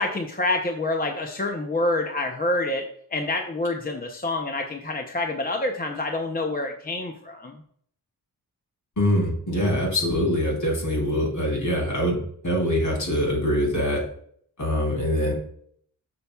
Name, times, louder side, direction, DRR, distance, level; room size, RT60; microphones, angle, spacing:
voice 1, 0.0-2.8 3.1-7.6, left 2 dB, 25° left, 3 dB, 0.6 m, -27 dB
voice 2, 9.0-12.2 12.4-14.0 14.6-15.3, equal, 50° left, -1 dB, 3.2 m, -23 dB
9.8 x 6.9 x 2.3 m, 0.64 s
wide cardioid pair, 140°, 38 cm